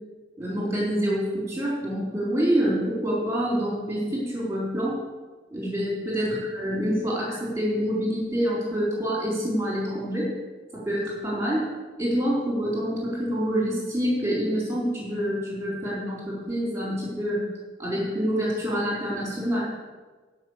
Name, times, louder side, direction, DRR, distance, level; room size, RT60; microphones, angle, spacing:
voice 1, 0.4-4.9 5.5-10.3 10.7-11.7 12.0-17.5 17.8-19.6, equal, 15° right, -5 dB, 4.0 m, -26 dB
9.8 x 5.8 x 8.1 m, 1.3 s
head